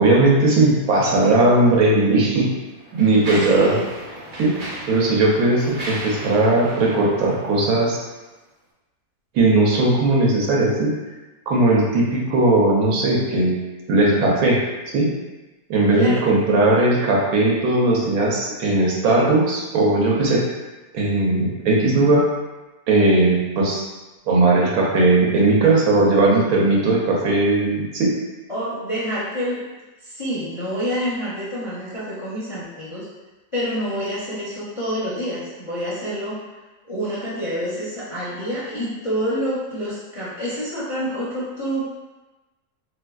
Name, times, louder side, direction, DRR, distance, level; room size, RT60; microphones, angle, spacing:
voice 1, 0.0-2.5 3.0-3.8 4.4-4.5 4.9-8.0 9.3-10.9 11.5-13.5 13.9-14.6 14.9-15.1 15.7-20.5 20.9-22.2 22.9-23.8 24.3-28.1, right 2 dB, 80° right, -3 dB, 1.2 m, -18 dB
Mechanisms, 1.6-1.7 2.5-8.2, right 1 dB, 60° right, 0.5 m, -35 dB
voice 2, 3.4-3.8 16.0-16.3 28.5-29.7 30.0-33.1 33.5-36.4 36.8-41.9, equal, 45° left, -9 dB, 0.4 m, -27 dB
3.4 x 2.8 x 2.3 m, 1.1 s
omnidirectional pair, 1.5 m